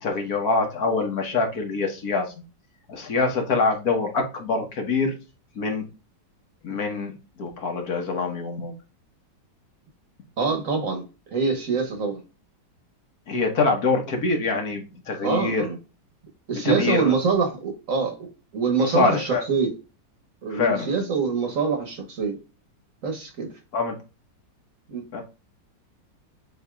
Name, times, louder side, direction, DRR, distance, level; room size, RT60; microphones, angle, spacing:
voice 1, 0.0-2.3 2.9-5.1 5.5-5.8 6.6-7.1 7.4-8.7 13.3-15.7 16.6-17.1 18.8-19.4 20.5-20.9 23.7-23.9 25.1-25.2, left 3 dB, 60° left, 1.5 m, -24 dB
voice 2, 10.4-12.2 15.2-15.8 16.5-18.3 18.5-19.7 20.4-22.4 23.0-23.5 24.9-25.0, right 5 dB, 50° right, 1.3 m, -25 dB
7.8 x 2.8 x 2.2 m
omnidirectional pair, 1.9 m